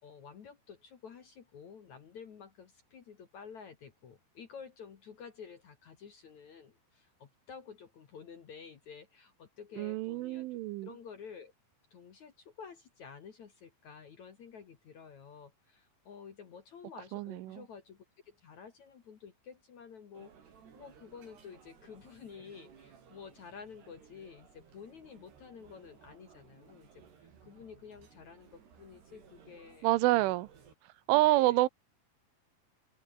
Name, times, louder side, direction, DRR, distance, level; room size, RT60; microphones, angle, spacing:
voice 1, 0.0-11.5 11.9-30.4 31.1-31.6, left 6 dB, 50° left, 2.4 m, -51 dB
voice 2, 9.8-10.9 17.1-17.6 29.8-30.5 31.1-31.7, right 18 dB, 85° right, 3.3 m, -27 dB
sound 1, 20.1-30.7, right 7 dB, 60° right, 6.0 m, -59 dB
open air
omnidirectional pair, 5.5 m